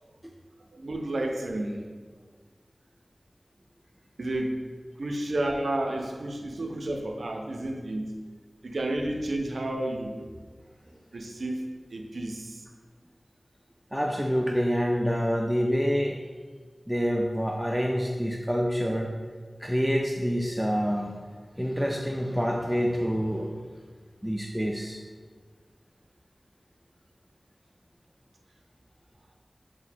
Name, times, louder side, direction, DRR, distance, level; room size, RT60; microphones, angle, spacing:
voice 1, 0.7-1.8 4.2-4.7 5.0-8.2 8.6-10.3 11.1-12.7, right 1 dB, 85° right, 2 dB, 0.4 m, -31 dB
voice 2, 13.9-16.2 16.9-19.1 19.6-21.1 21.6-23.5 24.2-25.0, equal, 5° right, 0 dB, 0.3 m, -27 dB
4.7 x 2.1 x 4.0 m, 1.5 s
cardioid pair, 40°, 0 cm